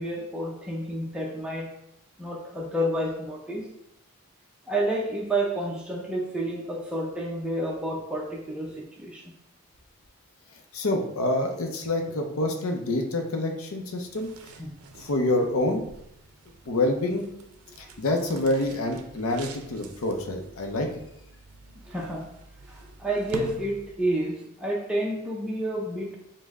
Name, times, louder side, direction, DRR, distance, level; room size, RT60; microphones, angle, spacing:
voice 1, 0.0-1.7 2.2-3.7 4.7-9.3 14.6-14.7 17.8-17.9 21.9-22.3 22.7-26.2, right 1 dB, 5° right, -2 dB, 0.5 m, -30 dB
voice 2, 10.7-14.3 15.0-15.8 16.7-17.3 18.0-20.9, left 1 dB, 70° left, 4 dB, 0.6 m, -27 dB
sound 1, 13.9-24.3, right 4 dB, 85° right, 0.4 m, -46 dB
5.3 x 2.1 x 3.5 m, 0.82 s
head